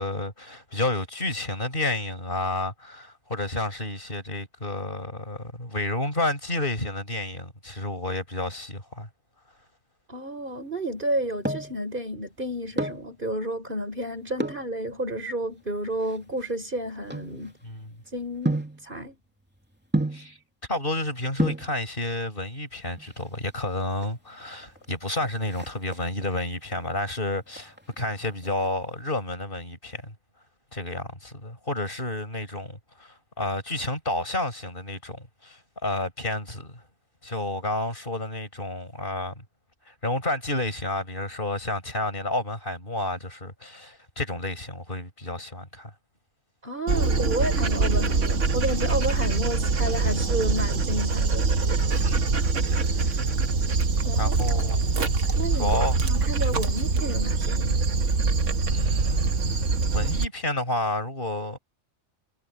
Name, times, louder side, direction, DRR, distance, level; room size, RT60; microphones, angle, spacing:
voice 1, 0.0-9.1 17.6-17.9 20.1-20.4 20.7-30.1 30.7-36.8 37.2-39.4 39.9-45.9 52.0-52.4 52.7-53.3 54.2-54.9 55.6-56.0 56.5-56.6 58.7-61.6, left 2 dB, 45° left, 7.2 m, -31 dB
voice 2, 10.1-17.5 18.1-19.2 46.6-51.5 52.8-53.1 54.0-54.3 55.3-55.7 56.0-57.8, right 1 dB, 45° right, 5.0 m, -31 dB
sound 1, 11.0-11.8 12.6-13.1 14.3-14.7 15.4-17.8 18.5-18.8 19.9-20.3 21.1-21.2 21.4-21.7 22.9-23.4 23.7-23.8 24.0-24.2 24.5-24.9 25.2-26.3 26.7-27.1 27.5-28.7 28.9-29.0, right 1 dB, 10° right, 2.8 m, -30 dB
Dog, 46.9-60.2, right 4 dB, 85° right, 1.8 m, -24 dB
omnidirectional pair, 1.2 m